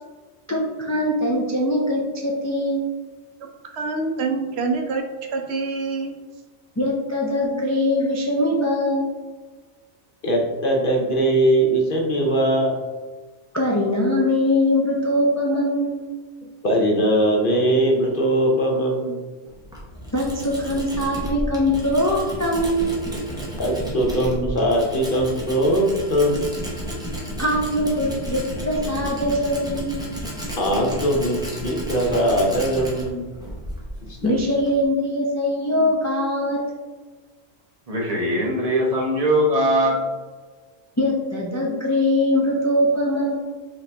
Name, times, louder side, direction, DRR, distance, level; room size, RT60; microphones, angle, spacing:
voice 1, 0.5-2.9 6.8-9.1 13.5-16.0 20.1-22.9 27.4-30.0 34.2-36.6 41.0-43.3, left 1 dB, 25° left, -3 dB, 0.4 m, -22 dB
voice 2, 3.7-5.0 5.3-6.2, right 4 dB, 70° right, 4 dB, 0.8 m, -25 dB
voice 3, 10.2-12.8 16.6-19.2 23.6-26.5 30.6-33.3 34.1-34.3, right 1 dB, 55° left, 0 dB, 0.8 m, -21 dB
Tools, 19.5-34.8, equal, 5° right, 0.8 m, -32 dB
voice 4, 37.9-39.9, equal, 35° right, -3 dB, 0.8 m, -20 dB
5.0 x 2.8 x 3.3 m, 1.3 s
omnidirectional pair, 1.2 m